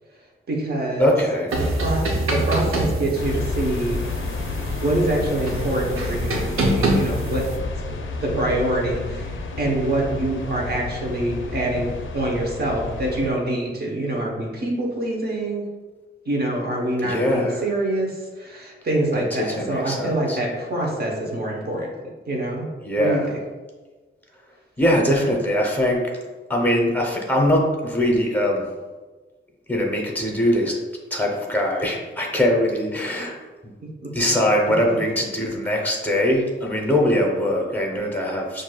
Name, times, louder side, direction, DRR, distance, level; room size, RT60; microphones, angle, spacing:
voice 1, 0.5-1.1 1.6-4.0 4.8-7.5 8.2-11.9 12.1-15.6 16.3-21.9 22.3-22.7 23.0-23.2 34.0-34.1, right 1 dB, 50° right, -2 dB, 0.9 m, -25 dB
voice 2, 1.0-1.5 17.0-17.6 19.1-20.4 22.8-23.3 24.8-26.1 26.5-28.7 29.7-30.8 31.1-33.3 33.6-33.7 34.1-38.6, equal, 10° left, -1 dB, 0.7 m, -22 dB
sound 1, 1.5-7.6, right 1 dB, 85° right, 0.6 m, -26 dB
sound 2, 3.1-13.3, left 3 dB, 65° left, 0.4 m, -30 dB
5.8 x 2.6 x 2.3 m, 1.3 s
wide cardioid pair, 130°, 21 cm